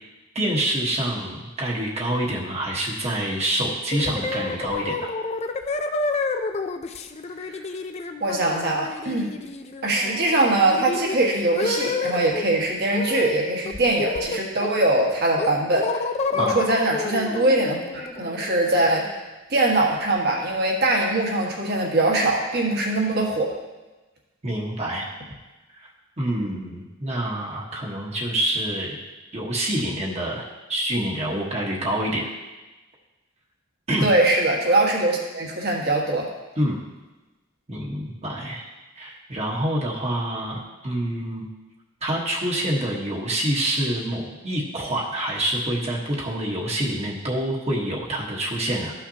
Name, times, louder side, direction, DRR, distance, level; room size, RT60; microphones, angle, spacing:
voice 1, 0.3-5.1 16.4-16.7 24.4-25.1 25.8-25.9 26.2-29.0 29.3-32.3 33.9-34.1 36.6-36.8 37.7-38.7 39.0-41.5 42.0-48.9, right 1 dB, 30° right, -3 dB, 1.3 m, -26 dB
sound 1, 3.9-12.4 12.9-13.4 13.7-14.9 15.4-19.1, left 3 dB, 30° left, 0.4 m, -29 dB
voice 2, 8.2-9.3 9.8-16.0 16.3-19.1 19.5-23.5 34.0-36.3, right 2 dB, 55° right, -1 dB, 1.6 m, -22 dB
13.5 x 5.8 x 2.8 m, 1.1 s
head